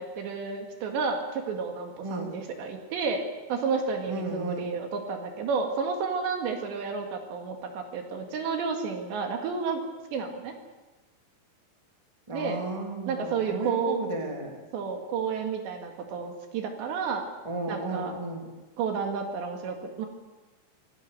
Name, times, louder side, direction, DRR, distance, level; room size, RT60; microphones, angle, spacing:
voice 1, 0.0-3.2 3.5-9.8 10.1-10.5 12.3-12.6 13.1-14.0 14.7-17.3 17.7-18.1 18.8-20.1, right 5 dB, 65° right, 4 dB, 3.9 m, -31 dB
voice 2, 4.1-4.7 12.3-14.6 17.4-18.4, right 2 dB, 10° right, 1 dB, 1.7 m, -33 dB
26.0 x 17.5 x 6.7 m, 1.1 s
omnidirectional pair, 5.7 m